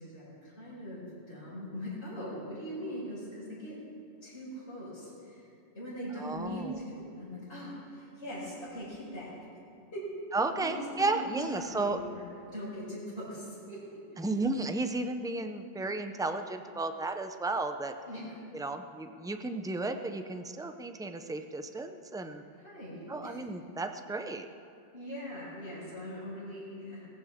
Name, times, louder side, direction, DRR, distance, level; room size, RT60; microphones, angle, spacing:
voice 1, 0.0-3.8 4.2-9.4 9.9-10.0 10.6-12.2 12.5-13.8 14.1-14.3 18.0-18.3 22.2-23.4 24.9-27.1, equal, 70° left, -9 dB, 5.0 m, -41 dB
voice 2, 6.2-6.7 10.3-12.0 14.2-17.9 18.5-22.4 23.1-24.5, right 2 dB, 5° right, 7 dB, 0.3 m, -33 dB
18.0 x 15.5 x 3.6 m, 2.5 s
omnidirectional pair, 1.2 m